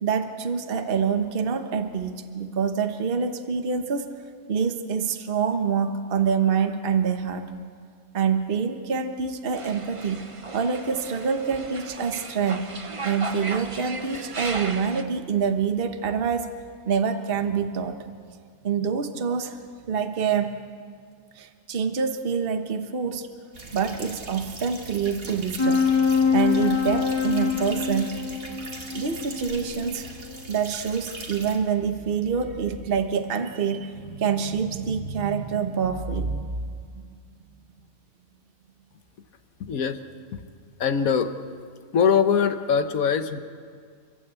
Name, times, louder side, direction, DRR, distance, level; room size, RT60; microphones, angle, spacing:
voice 1, 0.0-4.1 4.5-7.5 8.1-10.3 10.5-12.7 13.0-16.5 16.9-18.0 18.6-19.6 19.9-20.6 21.4-23.3 23.7-25.8 26.3-28.2 28.9-30.1 30.5-36.4, right 6 dB, 45° right, 7 dB, 1.2 m, -26 dB
sound 1, 9.6-15.0, right 3 dB, 25° right, 0.9 m, -36 dB
sound 2, 23.5-31.6, right 2 dB, 80° right, 2.9 m, -40 dB
sound 3, 25.6-30.4, left 6 dB, 20° left, 1.9 m, -25 dB
voice 2, 39.7-40.0 40.3-40.4 40.8-41.3 41.9-43.4, left 7 dB, 85° left, 9 dB, 1.5 m, -22 dB
30.0 x 12.5 x 8.2 m, 2.1 s
omnidirectional pair, 1.4 m